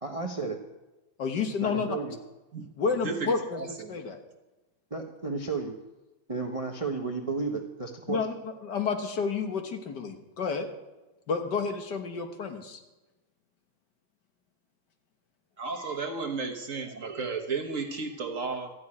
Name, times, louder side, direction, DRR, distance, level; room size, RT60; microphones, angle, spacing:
voice 1, 0.0-0.6 1.6-2.2 4.9-5.7 6.3-8.2, right 4 dB, 25° right, 3 dB, 0.7 m, -33 dB
voice 2, 1.2-1.9 2.8-4.2 8.1-10.7 11.3-12.8, left 5 dB, 65° left, 5 dB, 1.9 m, -30 dB
voice 3, 3.0-4.0 15.6-18.7, right 4 dB, 50° right, 3 dB, 1.4 m, -33 dB
13.5 x 6.3 x 9.8 m, 1.1 s
omnidirectional pair, 2.0 m